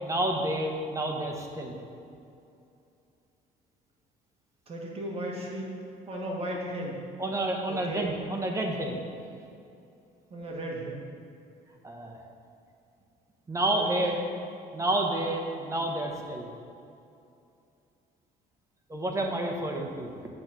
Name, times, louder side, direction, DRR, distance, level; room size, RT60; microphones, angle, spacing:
voice 1, 0.0-1.7 7.2-9.0 11.8-12.2 13.5-14.2 14.7-16.5 18.9-20.3, right 1 dB, 20° right, 1 dB, 1.2 m, -29 dB
voice 2, 4.7-5.7 6.1-7.0 7.7-8.0 10.3-11.0 13.7-14.2, right 1 dB, 35° right, -2 dB, 1.9 m, -35 dB
8.8 x 4.2 x 6.1 m, 2.6 s
cardioid pair, 110°, 17 cm